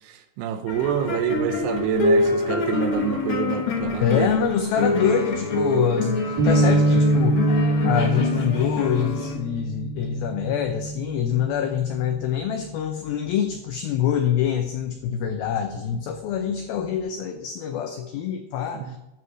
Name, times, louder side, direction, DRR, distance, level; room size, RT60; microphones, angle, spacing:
voice 1, 0.0-4.3 18.7-19.0, right 9 dB, 80° right, 7 dB, 2.7 m, -27 dB
sound 1, 0.7-9.3, left 2 dB, 70° left, 1.2 m, -25 dB
voice 2, 4.0-7.5 7.8-19.0, left 8 dB, 90° left, 6 dB, 2.1 m, -25 dB
sound 2, 6.4-12.8, right 2 dB, 60° right, 4.9 m, -25 dB
12.0 x 5.6 x 6.3 m, 0.99 s
omnidirectional pair, 5.1 m